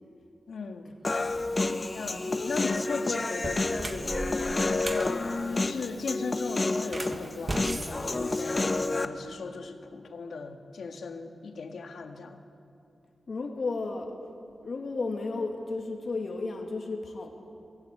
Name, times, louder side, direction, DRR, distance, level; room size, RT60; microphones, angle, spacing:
voice 1, 0.5-0.9 1.9-12.4, left 4 dB, 85° left, 5 dB, 1.7 m, -37 dB
Human voice, 1.0-9.1, left 3 dB, 35° left, 0.9 m, -29 dB
voice 2, 1.5-1.9 13.3-14.1 14.6-17.4, left 3 dB, 60° left, 2 dB, 2.2 m, -33 dB
sound 1, 2.6-2.8 3.3-5.1 6.8-8.9, right 2 dB, 30° right, 1.5 m, -37 dB
23.0 x 16.0 x 8.5 m, 2.6 s
wide cardioid pair, 95°, 0 cm